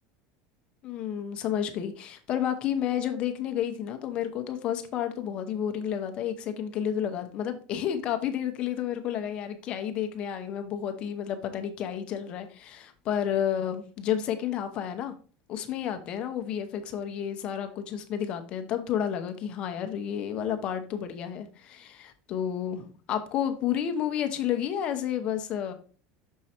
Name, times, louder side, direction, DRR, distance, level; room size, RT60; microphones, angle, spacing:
voice 1, 0.8-15.1 15.5-25.7, left 9 dB, 35° left, 7 dB, 0.8 m, -31 dB
6.4 x 4.7 x 4.2 m, 0.39 s
cardioid pair, 175°, 3 cm